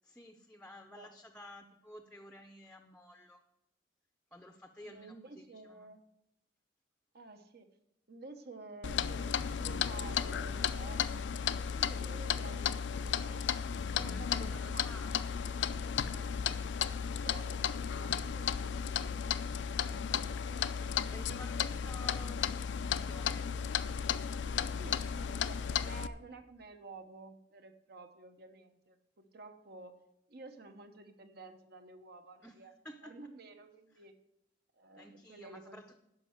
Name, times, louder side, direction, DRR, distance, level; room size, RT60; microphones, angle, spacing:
voice 1, 0.0-3.4 4.3-5.9 14.0-15.3 15.8-16.5 20.5-23.5 32.4-32.6 32.8-33.1 33.9-34.0 35.0-36.0, left 1 dB, 5° left, 6 dB, 0.6 m, -53 dB
voice 2, 4.8-6.0 7.1-7.7 8.1-13.4 13.9-15.5 16.2-16.4 16.7-19.2 21.2-21.3 24.8-29.9 30.3-32.7 33.0-34.1 34.8-36.0, right 3 dB, 60° right, 7 dB, 1.0 m, -52 dB
Clock, 8.8-26.1, left 7 dB, 75° left, 0.4 m, -34 dB
10.5 x 5.5 x 7.9 m, 0.85 s
head